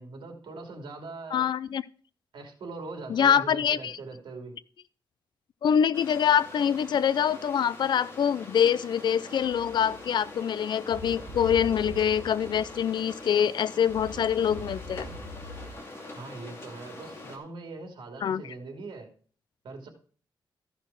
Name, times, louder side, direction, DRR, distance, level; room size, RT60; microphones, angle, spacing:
voice 1, 0.0-1.5 2.3-4.6 16.1-19.1 19.6-19.9, right 3 dB, 75° right, 4 dB, 2.9 m, -41 dB
voice 2, 1.3-1.8 3.1-4.0 5.6-15.1 18.2-18.4, left 8 dB, 60° left, 18 dB, 0.5 m, -25 dB
sound 1, 5.9-17.4, left 2 dB, 30° left, 2.7 m, -44 dB
sound 2, 9.4-15.7, left 1 dB, 35° right, 3.7 m, -43 dB
14.0 x 6.0 x 4.8 m, 0.44 s
wide cardioid pair, 140°, 8 cm